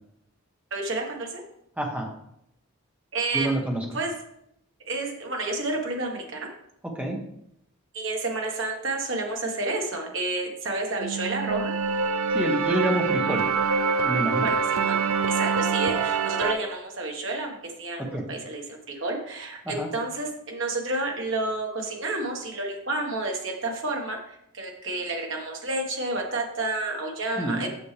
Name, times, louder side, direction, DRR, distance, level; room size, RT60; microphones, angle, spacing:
voice 1, 0.7-1.4 3.1-3.5 3.9-4.1 4.8-6.5 7.9-11.7 14.4-14.6 14.9-15.0 15.3-27.7, right 2 dB, 55° right, 1 dB, 1.4 m, -30 dB
voice 2, 1.8-2.1 3.3-3.8 6.9-7.2 12.3-13.4 14.0-14.5 18.1-18.2 19.6-19.9 27.4-27.6, right 1 dB, 5° right, 0 dB, 1.0 m, -27 dB
sound 1, 11.0-16.5, right 5 dB, 80° right, 0.5 m, -25 dB
7.1 x 6.3 x 3.3 m, 0.76 s
head